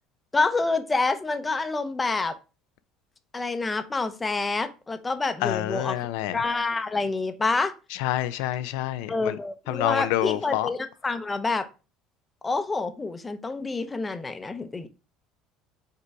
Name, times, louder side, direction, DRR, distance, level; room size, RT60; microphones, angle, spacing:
voice 1, 0.3-2.3 3.3-6.0 6.3-7.7 9.1-11.7 12.4-14.9, left 3 dB, 15° left, 0.7 m, -27 dB
voice 2, 5.4-6.4 8.0-9.4 9.7-10.7, left 14 dB, 85° left, 0.5 m, -27 dB
5.5 x 3.8 x 4.7 m
cardioid pair, 130°, 0 cm